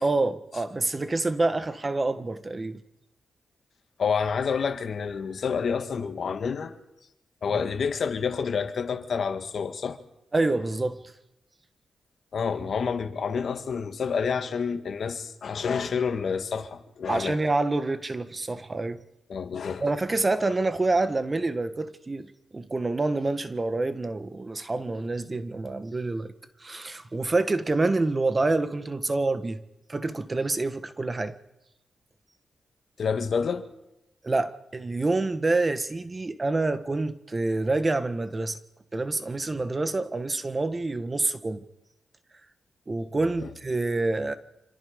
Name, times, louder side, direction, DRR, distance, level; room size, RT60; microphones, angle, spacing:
voice 1, 0.0-2.8 7.5-7.6 10.3-11.0 17.1-19.0 19.8-26.3 26.6-29.6 29.9-31.4 34.2-38.6 38.9-41.6 42.9-44.3, right 2 dB, 30° right, 1.5 m, -27 dB
voice 2, 4.0-6.7 7.4-10.0 12.3-17.4 19.3-19.8 33.0-33.7 43.4-43.5, left 6 dB, 65° left, 1.8 m, -28 dB
26.5 x 26.0 x 5.2 m
cardioid pair, 70°, 0 cm